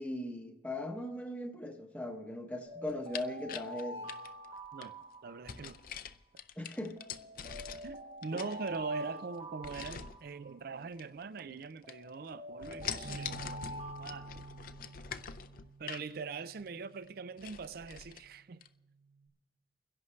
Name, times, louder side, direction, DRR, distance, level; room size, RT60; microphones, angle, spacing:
voice 1, 0.0-4.1 6.6-7.0 8.3-8.5, left 1 dB, 10° left, 0.8 m, -39 dB
sound 1, 2.6-5.8 7.0-10.7 11.8-15.1, equal, 40° right, 2.0 m, -47 dB
sound 2, 2.9-4.9 5.5-8.0 8.2-9.1 9.6-10.2 10.9-11.6 11.9-12.3 12.6-16.1 16.6-16.7 17.0-17.1 17.4-18.2 18.6-18.7, left 7 dB, 50° left, 0.5 m, -44 dB
voice 2, 5.2-5.8 7.8-13.7 14.0-14.4 15.8-18.6, right 4 dB, 60° right, 0.4 m, -42 dB
Bass guitar, 13.0-17.4 18.1-19.3, right 4 dB, 80° right, 1.9 m, -51 dB
30.0 x 11.0 x 3.2 m
head